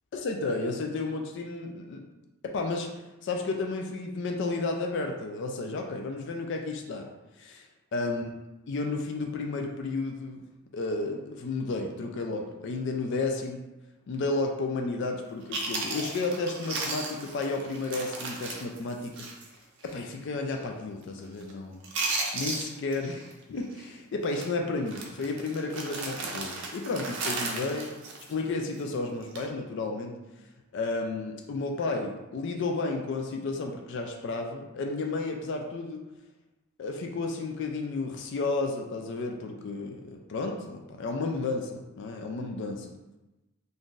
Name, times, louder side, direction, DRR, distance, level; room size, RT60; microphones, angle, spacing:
voice 1, 0.1-2.0 2.4-7.1 7.4-7.7 7.9-8.3 8.7-10.4 10.7-13.6 14.1-19.3 19.8-21.8 22.3-23.2 23.5-27.9 28.3-30.2 30.7-36.0 36.8-42.9, left 3 dB, 55° left, 2 dB, 0.3 m, -32 dB
Chewing mastication, 15.2-15.3 15.5-19.5 19.8-20.0 20.5-20.8 21.0-21.5 21.8-23.3 23.6-23.8 24.3-24.5 24.9-28.8 29.2-29.5, right 3 dB, 55° right, 0.5 m, -35 dB
2.6 x 2.4 x 3.6 m, 1.0 s
head